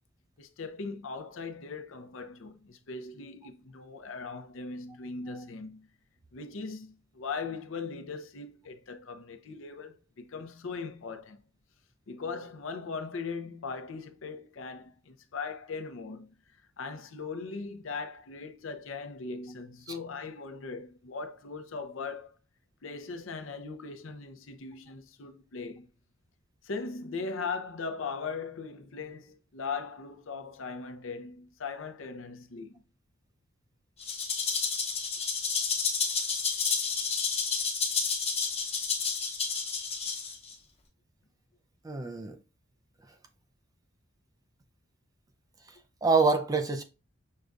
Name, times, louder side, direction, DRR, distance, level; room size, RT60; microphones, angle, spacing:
voice 1, 0.4-5.9 6.3-11.4 12.1-16.3 16.8-22.3 22.8-25.9 26.6-32.8, left 4 dB, 65° left, 0.6 m, -39 dB
Rattle (instrument), 34.0-40.5, left 5 dB, 30° left, 0.8 m, -30 dB
voice 2, 41.8-42.4 46.0-46.8, right 4 dB, 15° right, 0.4 m, -26 dB
6.5 x 2.3 x 2.4 m
head